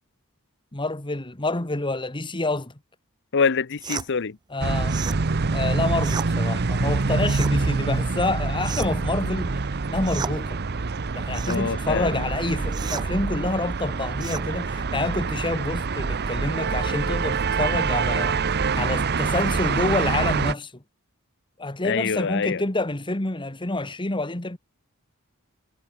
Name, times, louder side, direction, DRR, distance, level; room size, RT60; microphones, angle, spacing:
voice 1, 0.7-2.7 4.5-5.0 5.5-9.6 9.9-10.6 11.1-18.4 18.8-20.7 21.6-24.6, left 2 dB, 20° left, 1.6 m, -27 dB
voice 2, 3.3-4.4 11.5-12.3 21.8-22.6, left 5 dB, 55° left, 0.7 m, -25 dB
sound 1, 3.8-4.1 4.9-5.2 6.0-6.3 7.2-7.6 8.6-9.1 10.0-10.4 11.3-11.6 12.7-13.1 14.2-14.5, right 6 dB, 20° right, 0.3 m, -33 dB
sound 2, 4.6-20.5, right 4 dB, 50° right, 0.8 m, -25 dB
head